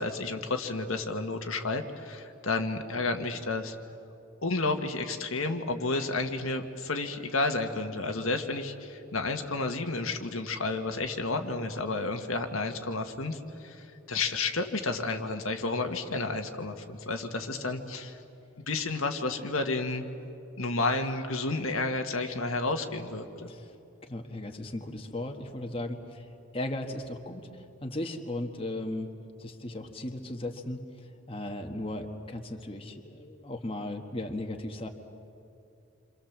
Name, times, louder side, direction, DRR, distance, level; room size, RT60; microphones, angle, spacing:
voice 1, 0.0-3.8 4.4-18.2 18.7-20.1 20.6-23.5, left 3 dB, 80° left, 4 dB, 1.7 m, -31 dB
voice 2, 24.0-29.1 29.4-34.9, left 1 dB, 25° left, 3 dB, 1.5 m, -37 dB
29.0 x 26.0 x 7.4 m, 2.7 s
head